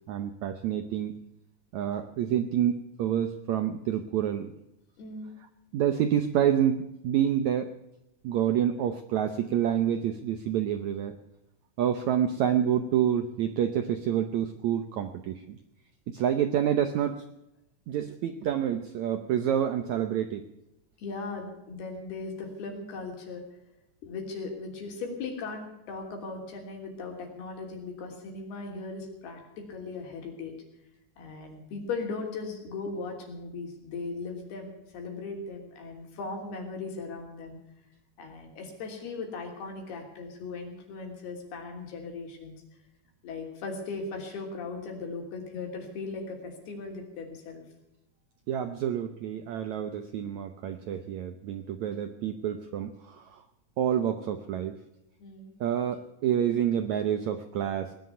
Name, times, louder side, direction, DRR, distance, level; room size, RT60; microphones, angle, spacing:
voice 1, 0.1-1.1 1.7-4.5 5.7-7.7 8.2-11.1 11.8-15.6 16.1-17.2 17.9-20.4 48.5-53.4 53.8-54.8 55.6-57.9, right 9 dB, 75° right, 8 dB, 1.7 m, -28 dB
voice 2, 5.0-5.3 21.0-23.5 24.0-30.6 31.2-37.6 38.2-42.5 43.2-47.6 55.2-55.5, left 4 dB, 90° left, 2 dB, 5.1 m, -38 dB
19.0 x 10.5 x 6.9 m, 0.88 s
omnidirectional pair, 4.4 m